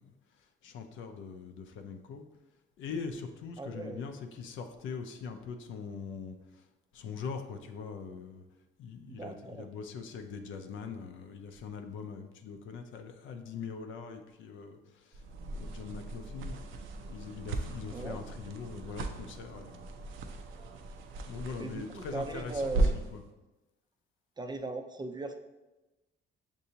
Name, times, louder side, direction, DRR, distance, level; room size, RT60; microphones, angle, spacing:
voice 1, 0.0-2.3 2.8-6.6 6.9-8.4 8.8-16.5 17.1-19.8 21.3-23.2, left 5 dB, 75° left, 6 dB, 0.5 m, -42 dB
voice 2, 3.6-4.1 9.0-9.7 17.9-18.2 21.6-22.9 24.4-25.4, right 3 dB, 20° right, 6 dB, 0.4 m, -38 dB
sound 1, 15.1-23.2, right 2 dB, 80° right, 0.5 m, -36 dB
6.7 x 2.7 x 2.8 m, 1.1 s
cardioid pair, 90°, 20 cm